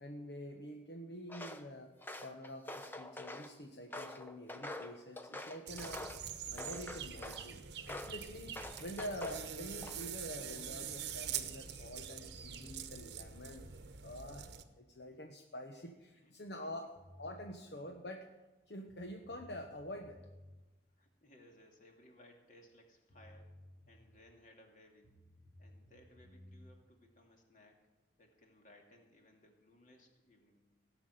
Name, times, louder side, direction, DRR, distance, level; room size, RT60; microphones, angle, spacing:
voice 1, 0.0-1.9 2.2-6.1 6.5-13.7 14.0-16.9 17.2-18.3 18.7-20.2, equal, 60° left, 3 dB, 1.1 m, -47 dB
Walk footsteps, 1.3-1.6 2.0-3.5 3.9-6.2 6.6-7.4 7.9-8.2 8.5-9.4 9.8-10.2, left 1 dB, 10° left, 0.7 m, -46 dB
sound 1, 5.7-14.6, right 8 dB, 60° right, 1.0 m, -45 dB
voice 2, 16.1-16.9 17.6-17.7 20.9-23.5 23.9-25.1 25.6-27.8 28.2-30.6, left 1 dB, 40° left, 1 dB, 2.5 m, -63 dB
sound 2, 17.0-17.5 18.5-18.6 18.9-20.6 22.7-22.8 23.1-24.3 25.0-26.7, left 1 dB, 80° left, 2.8 m, -58 dB
17.0 x 7.1 x 9.2 m, 1.1 s
head